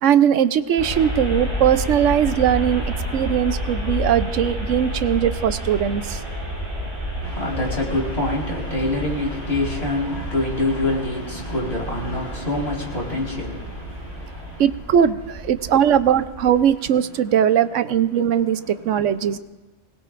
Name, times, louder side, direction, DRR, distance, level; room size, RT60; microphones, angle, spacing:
voice 1, 0.0-6.2 14.6-19.4, right 9 dB, 85° right, 1.0 m, -20 dB
sound 1, 0.8-16.6, equal, 20° right, 6.7 m, -30 dB
voice 2, 7.2-14.6 15.6-15.7 18.7-19.4, left 2 dB, 60° left, 4.8 m, -26 dB
24.5 x 20.5 x 2.6 m
omnidirectional pair, 1.2 m